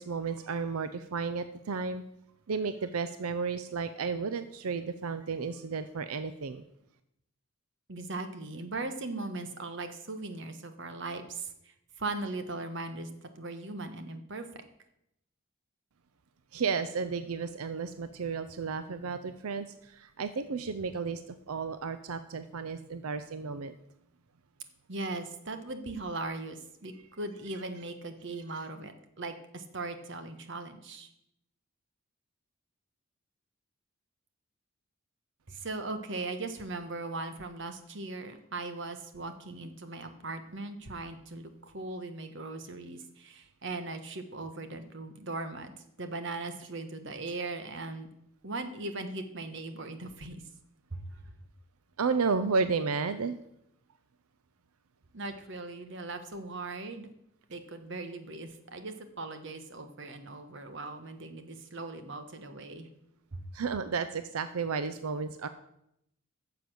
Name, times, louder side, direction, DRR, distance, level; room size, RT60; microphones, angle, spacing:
voice 1, 0.0-2.0 2.5-6.6 16.5-23.7 52.0-53.4 63.5-65.5, right 5 dB, 90° right, 11 dB, 0.6 m, -33 dB
voice 2, 7.9-13.1 13.3-14.6 24.9-31.1 35.5-45.7 46.0-48.1 48.4-50.4 50.9-51.3 55.1-57.1 57.5-62.9 63.3-63.4, right 2 dB, 55° right, 8 dB, 1.2 m, -39 dB
9.9 x 6.9 x 7.8 m, 0.78 s
head